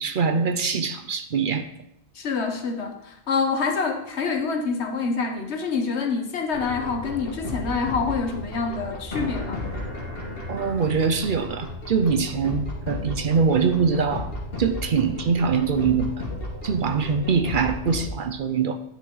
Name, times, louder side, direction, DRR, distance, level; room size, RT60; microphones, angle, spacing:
voice 1, 0.0-1.7 10.5-14.3 14.6-16.2 16.6-18.8, right 5 dB, 55° right, 9 dB, 0.7 m, -23 dB
voice 2, 2.1-9.6, left 4 dB, 80° left, 5 dB, 1.3 m, -26 dB
sound 1, 6.5-18.1, left 1 dB, 60° left, 1.9 m, -34 dB
9.7 x 6.1 x 3.8 m, 0.75 s
omnidirectional pair, 1.1 m